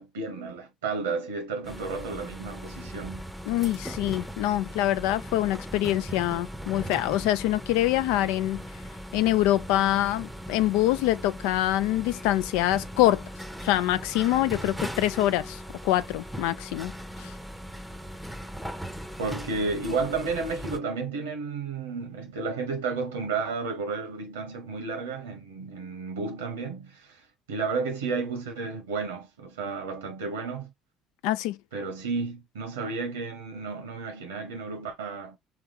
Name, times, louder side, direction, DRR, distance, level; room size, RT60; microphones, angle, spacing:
voice 1, 0.0-3.2 19.2-27.2 27.5-30.7 31.7-35.4, right 4 dB, 75° right, 1.0 m, -32 dB
sound 1, 1.6-20.8, equal, ahead, 0.7 m, -39 dB
voice 2, 3.5-8.6 9.1-13.2 13.6-16.9 17.2-17.3 31.2-31.6, left 14 dB, 65° left, 0.4 m, -25 dB
3.4 x 3.4 x 3.4 m
figure-of-eight pair, 55°, 0 cm